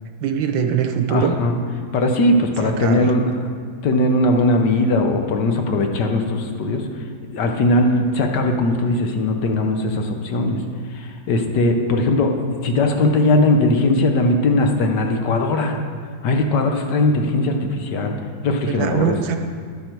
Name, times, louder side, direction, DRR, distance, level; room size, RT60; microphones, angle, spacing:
voice 1, 0.2-1.4 2.6-3.1 12.8-12.9 18.5-19.4, right 7 dB, 85° right, 6 dB, 1.6 m, -22 dB
voice 2, 1.1-1.6 1.9-3.3 3.8-6.9 7.3-10.6 10.9-12.4 12.6-15.7 16.2-18.2 18.4-19.2, left 2 dB, 70° left, 4 dB, 1.5 m, -19 dB
11.0 x 9.6 x 4.6 m, 2.1 s
omnidirectional pair, 2.0 m